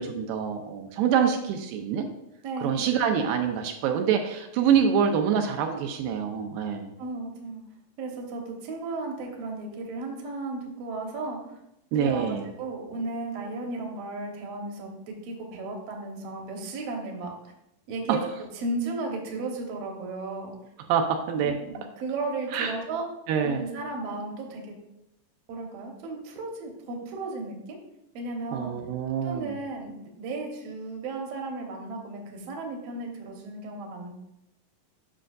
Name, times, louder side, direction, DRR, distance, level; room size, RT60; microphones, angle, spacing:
voice 1, 0.0-2.1 2.6-6.9 11.9-12.5 20.9-21.5 22.5-22.7 23.3-23.6 28.5-29.5, right 7 dB, 80° right, 4 dB, 2.3 m, -25 dB
voice 2, 2.4-2.8 6.7-7.6 8.0-11.6 11.9-17.5 17.9-20.5 21.4-23.1 23.4-24.7 25.5-27.8 28.1-28.7 29.2-34.4, right 3 dB, 60° right, 1 dB, 1.9 m, -35 dB
9.9 x 6.3 x 2.5 m, 0.84 s
omnidirectional pair, 4.1 m